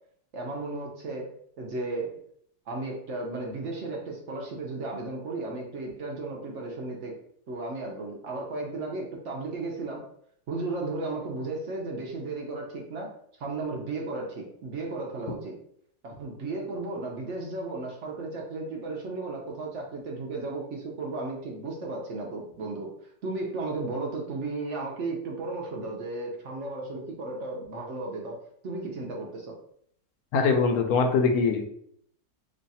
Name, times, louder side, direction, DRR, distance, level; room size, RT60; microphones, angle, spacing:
voice 1, 0.3-1.3 1.6-2.1 2.7-7.2 7.5-10.0 10.5-13.1 13.4-15.6 16.0-22.9 23.2-28.4 28.6-29.6, right 3 dB, 60° right, -1 dB, 0.8 m, -34 dB
voice 2, 30.3-31.7, left 4 dB, 70° left, 4 dB, 1.0 m, -22 dB
3.2 x 2.4 x 4.0 m, 0.67 s
omnidirectional pair, 2.0 m